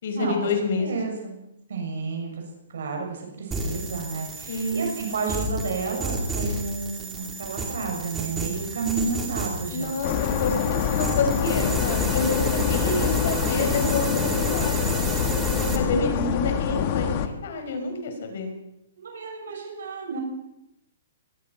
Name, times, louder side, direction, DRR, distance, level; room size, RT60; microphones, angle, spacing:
voice 1, 0.0-0.9 4.5-4.9 9.7-15.0 15.5-18.5, left 3 dB, 45° left, 5 dB, 5.5 m, -28 dB
voice 2, 0.8-1.3 1.7-2.3 2.7-9.9 15.8-16.5 19.0-20.2, right 4 dB, 65° right, 2 dB, 7.1 m, -31 dB
sound 1, 3.5-15.8, right 3 dB, 10° right, 2.5 m, -31 dB
sound 2, 10.0-17.3, left 9 dB, 25° left, 1.5 m, -25 dB
23.0 x 20.5 x 6.0 m, 0.84 s
hypercardioid pair, 175°, 0 cm